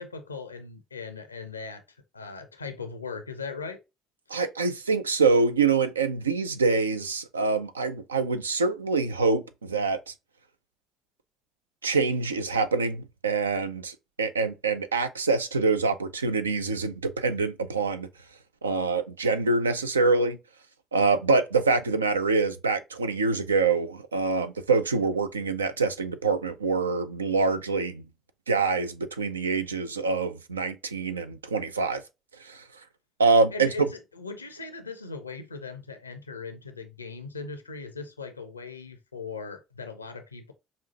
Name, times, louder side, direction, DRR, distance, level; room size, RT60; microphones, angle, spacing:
voice 1, 0.0-1.8 2.1-3.8 4.3-4.4 33.5-40.5, left 4 dB, 85° left, 0.5 m, -39 dB
voice 2, 4.3-10.1 11.8-18.1 18.6-20.4 20.9-28.0 28.5-32.0 32.4-32.6 33.2-33.7, right 4 dB, 80° right, 0.3 m, -25 dB
5.4 x 2.5 x 2.7 m
figure-of-eight pair, 50°, 0 cm